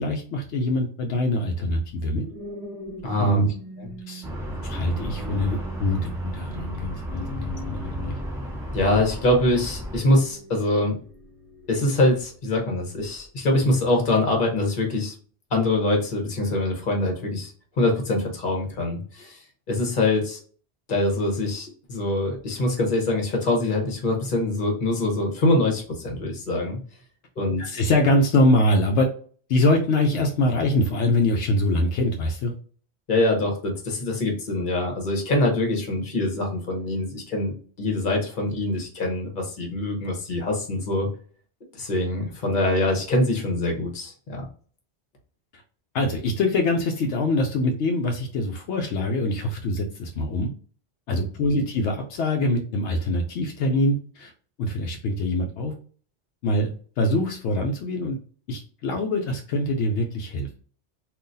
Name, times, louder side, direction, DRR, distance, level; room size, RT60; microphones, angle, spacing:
voice 1, 0.0-2.2 3.2-3.5 4.1-4.2 4.6-8.1 27.6-29.1 29.5-32.5 45.5-45.6 45.9-50.5 51.1-54.3 54.6-55.7 56.4-58.2 58.5-60.6, left 1 dB, 80° left, 3 dB, 0.9 m, -24 dB
sound 1, 1.9-12.4 13.0-13.3, right 1 dB, 35° right, 0.7 m, -42 dB
voice 2, 3.0-3.4 3.8-3.9 8.7-11.0 11.7-15.1 15.5-17.5 17.8-19.4 19.7-20.4 20.9-26.8 27.4-27.8 33.1-37.5 37.8-41.1 41.8-44.5, left 2 dB, 45° left, 1 dB, 1.1 m, -24 dB
sound 2, 4.2-10.0, equal, 5° right, 1.0 m, -33 dB
3.7 x 2.5 x 2.6 m, 0.43 s
omnidirectional pair, 1.2 m